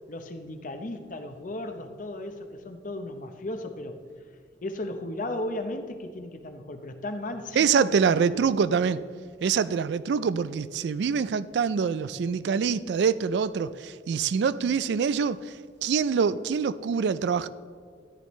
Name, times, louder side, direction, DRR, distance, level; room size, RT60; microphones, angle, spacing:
voice 1, 0.1-4.0 4.6-8.4, left 1 dB, 45° left, 7 dB, 0.8 m, -35 dB
voice 2, 7.6-9.0 9.4-15.5 15.8-17.5, right 6 dB, 65° right, 16 dB, 0.3 m, -25 dB
14.0 x 10.0 x 3.1 m, 2.1 s
head